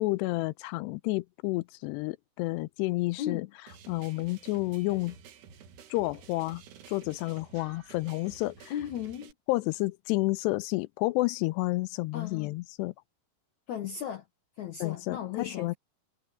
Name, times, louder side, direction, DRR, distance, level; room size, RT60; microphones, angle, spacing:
voice 1, 0.0-3.5 3.9-5.2 5.9-6.6 6.9-8.7 9.5-12.9 14.8-15.8, left 21 dB, 90° left, 2.7 m, -30 dB
voice 2, 3.2-3.5 8.7-9.3 12.1-12.5 13.7-14.2 14.6-15.7, left 10 dB, 70° left, 1.8 m, -36 dB
sound 1, 3.7-9.3, right 7 dB, 75° right, 3.9 m, -52 dB
omnidirectional pair, 4.8 m